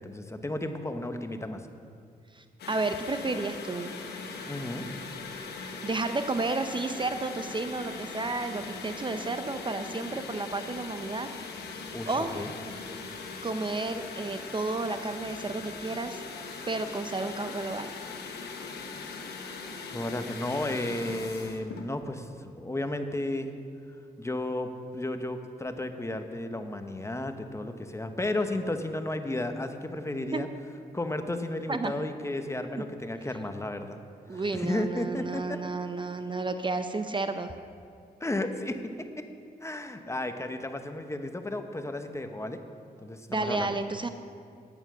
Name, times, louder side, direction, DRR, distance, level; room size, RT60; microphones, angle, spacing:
voice 1, 0.0-1.6 4.4-4.9 11.9-12.5 19.9-23.5 24.2-30.5 30.9-34.0 34.3-35.6 38.2-38.8 39.2-39.3 39.6-42.6 43.0-43.7, left 1 dB, 15° left, 7 dB, 0.9 m, -33 dB
voice 2, 2.3-3.9 5.8-11.3 12.1-12.4 13.4-16.2 16.7-17.9 30.3-30.4 31.7-31.9 34.3-37.5 43.3-44.1, right 3 dB, 30° right, 9 dB, 0.6 m, -32 dB
sound 1, 2.6-21.9, left 4 dB, 85° left, 1.1 m, -40 dB
9.1 x 8.9 x 6.2 m, 2.3 s
cardioid pair, 65°, 17 cm